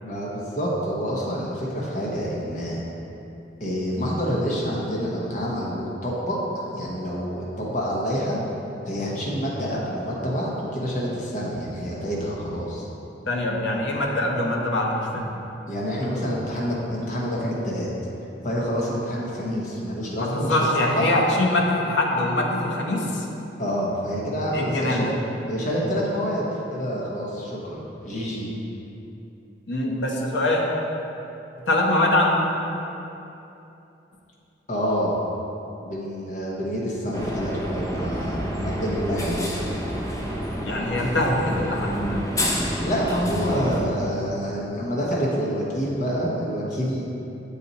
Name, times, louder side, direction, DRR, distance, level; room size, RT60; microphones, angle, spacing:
voice 1, 0.0-2.8 3.6-8.4 8.9-12.8 15.7-17.9 18.4-21.1 23.6-25.1 25.5-26.4 26.7-27.8 28.0-28.5 34.7-35.1 35.8-39.5 42.8-47.0, equal, 45° left, -5 dB, 0.9 m, -27 dB
voice 2, 13.3-15.2 20.2-23.2 24.5-25.1 29.7-30.6 31.7-32.4 40.6-42.2, left 1 dB, 80° left, -1 dB, 0.8 m, -23 dB
sound 1, 37.1-43.8, equal, 20° left, 0.5 m, -28 dB
7.5 x 4.1 x 4.1 m, 2.9 s
head